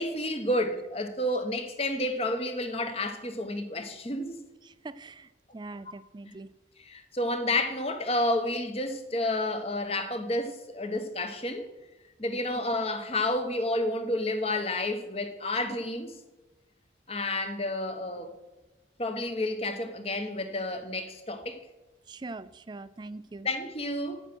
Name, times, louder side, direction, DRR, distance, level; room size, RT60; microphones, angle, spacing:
voice 1, 0.0-4.4 6.8-11.7 12.2-16.1 17.1-18.3 19.0-21.7 23.4-24.2, left 1 dB, 35° left, 1.1 m, -30 dB
voice 2, 4.6-6.5 12.5-12.6 22.1-23.5, right 3 dB, 25° right, 0.4 m, -42 dB
9.1 x 8.8 x 6.1 m
head